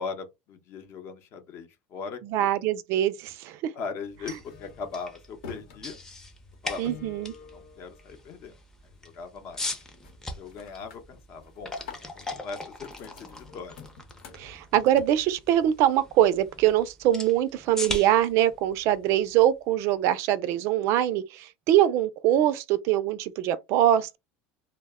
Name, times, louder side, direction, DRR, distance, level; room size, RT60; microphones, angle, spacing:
voice 1, 0.0-2.5 3.7-6.0 6.6-6.9 7.4-8.6 9.0-9.6 10.4-13.8, left 5 dB, 50° left, 0.7 m, -39 dB
voice 2, 2.3-3.7 6.8-7.3 14.4-24.2, right 12 dB, 55° right, 0.3 m, -23 dB
sound 1, 4.1-8.6 9.0-9.4 9.7-10.1 10.5-15.8, left 6 dB, 80° left, 1.0 m, -49 dB
sound 2, 4.1-20.0, left 2 dB, 10° left, 0.6 m, -41 dB
2.0 x 2.0 x 3.4 m
supercardioid pair, 135°, 5 cm